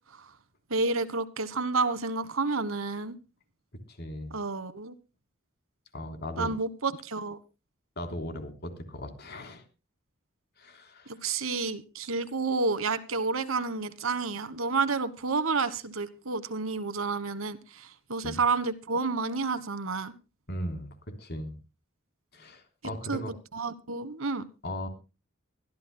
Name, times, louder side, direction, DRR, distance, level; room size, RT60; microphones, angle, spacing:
voice 1, 0.7-3.2 4.3-4.9 6.4-7.4 11.1-20.1 23.1-23.2 23.5-24.4, right 4 dB, 85° right, 14 dB, 1.4 m, -30 dB
voice 2, 3.9-4.3 5.9-6.5 8.0-9.6 10.6-11.1 18.2-18.4 20.5-21.5 22.3-23.3 24.6-24.9, equal, 55° left, 7 dB, 3.5 m, -37 dB
24.0 x 13.5 x 2.2 m, 0.30 s
head